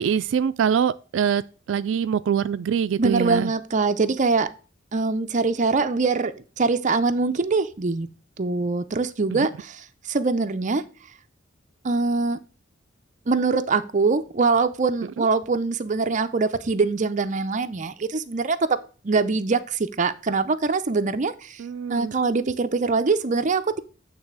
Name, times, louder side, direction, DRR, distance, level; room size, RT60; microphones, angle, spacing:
voice 1, 0.0-1.4 1.7-3.5 9.3-9.5 15.2-15.3 21.6-22.1, right 7 dB, 85° right, 0.3 m, -24 dB
voice 2, 3.0-4.5 4.9-8.1 8.4-9.8 10.1-10.8 11.8-12.4 13.3-18.8 19.0-21.6 21.9-23.8, right 4 dB, 40° right, 0.6 m, -23 dB
8.5 x 3.4 x 6.1 m
head